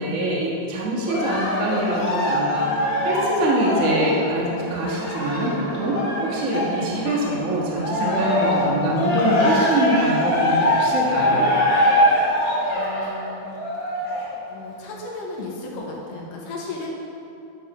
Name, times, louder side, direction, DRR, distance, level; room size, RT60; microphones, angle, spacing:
voice 1, 0.0-2.7 3.0-6.0 6.2-11.4, right 1 dB, 45° right, -4 dB, 0.9 m, -24 dB
Cheering, 1.1-7.4 7.8-14.3 15.0-15.1, left 1 dB, 40° left, 2.1 m, -23 dB
sound 1, 1.2-12.7, right 1 dB, 70° right, 2.4 m, -37 dB
voice 2, 12.7-13.5 14.5-16.9, left 3 dB, 75° left, -2 dB, 2.7 m, -35 dB
11.5 x 6.1 x 4.9 m, 2.7 s
omnidirectional pair, 4.0 m